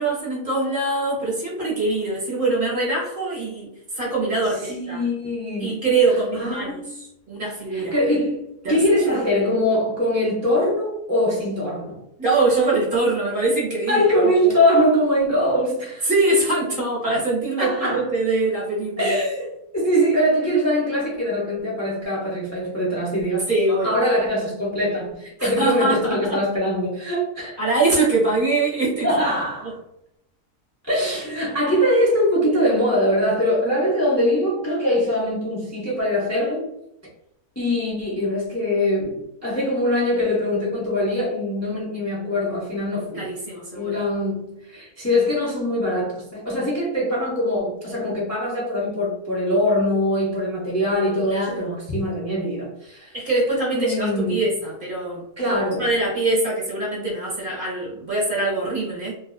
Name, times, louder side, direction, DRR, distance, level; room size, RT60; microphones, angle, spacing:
voice 1, 0.0-5.0 5.6-8.0 8.6-8.8 12.2-14.6 16.0-19.2 23.5-23.9 25.4-26.4 27.6-29.1 43.1-44.0 51.3-51.7 53.1-59.1, right 2 dB, 40° right, -6 dB, 1.0 m, -23 dB
voice 2, 4.6-5.8 6.3-6.9 7.7-12.0 13.9-16.1 17.6-18.1 19.0-19.5 19.7-23.5 23.8-27.6 29.0-29.8 30.9-36.7 37.6-43.3 43.7-53.1 53.7-54.4 55.4-55.8, equal, 25° left, -6 dB, 0.3 m, -22 dB
2.6 x 2.4 x 2.3 m, 0.82 s
omnidirectional pair, 1.6 m